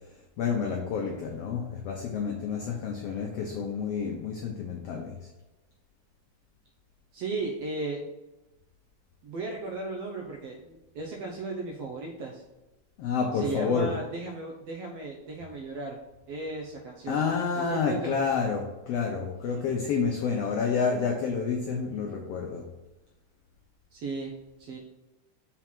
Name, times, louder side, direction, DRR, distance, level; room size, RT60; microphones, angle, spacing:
voice 1, 0.4-5.2 13.0-13.9 17.1-22.6, left 5 dB, 80° left, 1 dB, 1.4 m, -29 dB
voice 2, 7.1-8.1 9.2-12.4 13.3-16.0 16.3-17.2 17.5-18.1 23.9-24.3 24.6-24.8, right 3 dB, 70° right, 0 dB, 1.5 m, -35 dB
6.0 x 4.5 x 6.0 m, 1.0 s
omnidirectional pair, 3.8 m